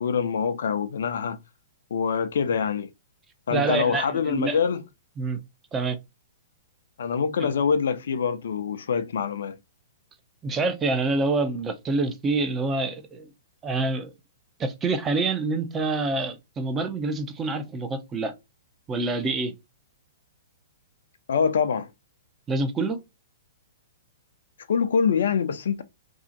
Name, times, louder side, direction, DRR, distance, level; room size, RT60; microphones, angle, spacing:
voice 1, 0.0-1.4 1.9-2.9 3.5-4.8 7.0-9.6 21.3-21.9 24.7-25.8, left 6 dB, 65° left, 0.5 m, -25 dB
voice 2, 3.5-4.6 5.2-5.4 5.7-6.0 7.4-7.5 10.4-13.3 13.6-14.1 14.6-18.3 18.9-19.5 22.5-23.0, right 3 dB, 20° right, 0.7 m, -26 dB
2.7 x 2.4 x 3.9 m
figure-of-eight pair, 115°, 0 cm